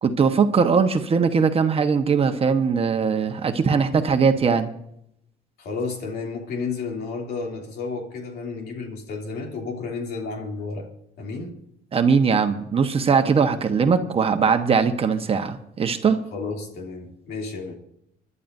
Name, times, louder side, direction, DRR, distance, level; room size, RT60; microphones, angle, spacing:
voice 1, 0.0-4.7 11.9-16.2, right 5 dB, 35° right, 1.2 m, -20 dB
voice 2, 5.6-10.9 11.2-11.6 16.3-17.7, left 4 dB, 70° left, 2.9 m, -32 dB
26.5 x 11.0 x 2.7 m
cardioid pair, 110°, 17 cm